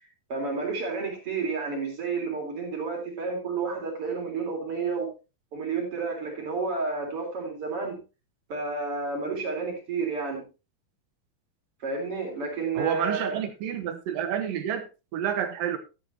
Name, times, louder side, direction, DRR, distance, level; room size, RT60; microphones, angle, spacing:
voice 1, 0.3-5.1 5.5-8.0 8.5-10.5 11.8-13.4, right 4 dB, 40° right, 4.2 m, -31 dB
voice 2, 12.8-14.9 15.1-15.8, right 9 dB, 75° right, 2.8 m, -29 dB
12.5 x 11.5 x 2.8 m
omnidirectional pair, 4.1 m